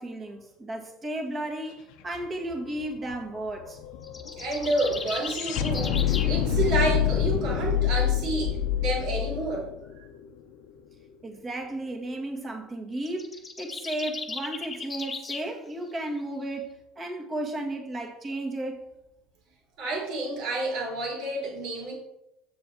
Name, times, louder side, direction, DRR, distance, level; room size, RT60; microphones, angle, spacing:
voice 1, 0.0-3.8 11.2-18.9, right 1 dB, 30° right, 2.0 m, -34 dB
sound 1, 2.1-2.2 2.5-10.7, left 10 dB, 70° left, 0.7 m, -27 dB
sound 2, 4.0-6.4 13.0-15.5, left 4 dB, 25° left, 1.0 m, -37 dB
voice 2, 4.4-9.6 10.0-10.1 19.8-21.9, right 2 dB, 65° right, 3.2 m, -29 dB
7.6 x 6.7 x 3.9 m
hypercardioid pair, 80°, 0 cm